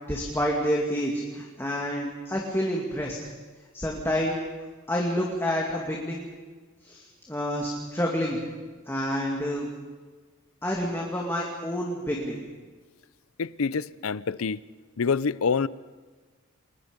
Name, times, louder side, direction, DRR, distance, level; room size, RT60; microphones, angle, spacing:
voice 1, 0.1-3.2 3.7-4.4 4.9-6.3 6.8-8.4 8.9-9.7 10.6-12.4, equal, 10° left, 2.4 m, -28 dB
voice 2, 13.4-14.6 15.0-15.7, left 5 dB, 80° left, 0.6 m, -26 dB
28.5 x 21.5 x 5.3 m
head